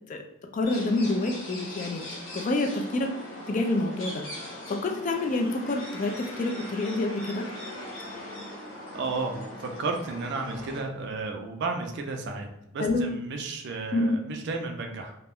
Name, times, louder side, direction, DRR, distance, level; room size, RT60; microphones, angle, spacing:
voice 1, 0.5-2.1 2.3-3.1 3.5-7.5 12.8-13.1 13.9-14.2, left 2 dB, 35° left, 3 dB, 0.3 m, -27 dB
sound 1, 0.6-10.8, left 1 dB, 70° left, 1.1 m, -40 dB
voice 2, 8.9-12.5 12.7-15.1, right 3 dB, 55° right, 4 dB, 0.3 m, -33 dB
2.4 x 2.1 x 3.4 m, 0.87 s
head